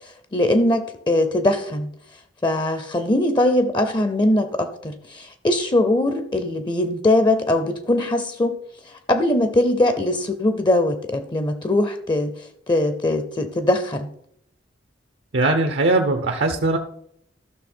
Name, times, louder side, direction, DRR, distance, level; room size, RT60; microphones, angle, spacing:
voice 1, 0.3-1.9 2.4-8.6 8.9-14.1, left 1 dB, 25° left, 10 dB, 0.5 m, -21 dB
voice 2, 15.3-16.8, right 2 dB, 75° right, 5 dB, 0.7 m, -20 dB
14.0 x 6.2 x 4.4 m, 0.72 s
head